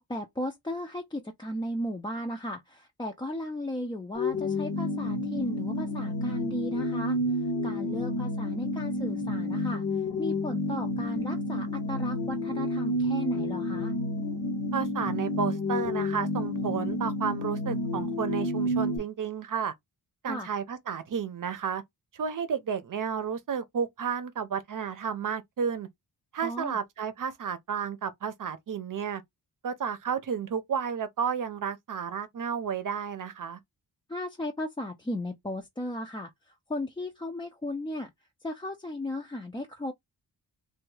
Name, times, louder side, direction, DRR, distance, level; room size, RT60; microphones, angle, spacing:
voice 1, 0.0-13.9 20.3-20.5 26.4-26.8 34.1-38.1 38.4-39.9, left 1 dB, 15° left, 0.4 m, -36 dB
sound 1, 4.1-19.0, left 1 dB, 70° left, 0.8 m, -30 dB
voice 2, 14.7-19.7 20.2-21.8 22.1-25.9 26.3-29.2 29.6-33.6, right 7 dB, 55° right, 0.7 m, -32 dB
3.4 x 2.3 x 3.1 m
wide cardioid pair, 160°, 38 cm